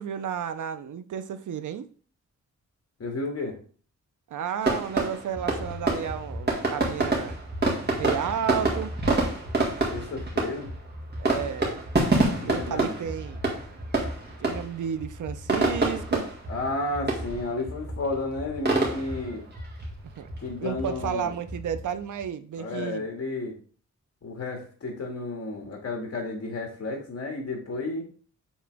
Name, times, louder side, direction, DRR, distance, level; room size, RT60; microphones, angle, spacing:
voice 1, 0.0-1.9 4.3-7.4 8.0-8.9 11.2-11.8 12.4-13.4 14.4-16.3 20.2-20.3 20.6-23.1, right 8 dB, 80° right, 0.6 m, -32 dB
voice 2, 3.0-3.6 9.9-10.7 12.3-13.1 16.5-19.4 20.4-21.3 22.6-23.5 24.2-28.0, left 2 dB, 55° left, 2.0 m, -32 dB
sound 1, 4.6-22.2, right 2 dB, 35° right, 1.9 m, -28 dB
7.2 x 3.8 x 3.4 m
wide cardioid pair, 105°, 30 cm